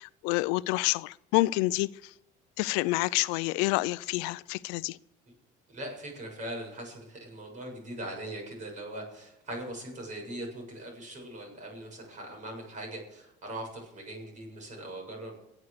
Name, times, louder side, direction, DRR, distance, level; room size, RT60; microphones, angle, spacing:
voice 1, 0.0-2.1 2.6-5.0, left 21 dB, 90° left, 0.5 m, -28 dB
voice 2, 5.7-15.5, right 1 dB, 40° right, 7.3 m, -40 dB
22.5 x 8.3 x 6.7 m
cardioid pair, 110°, 19 cm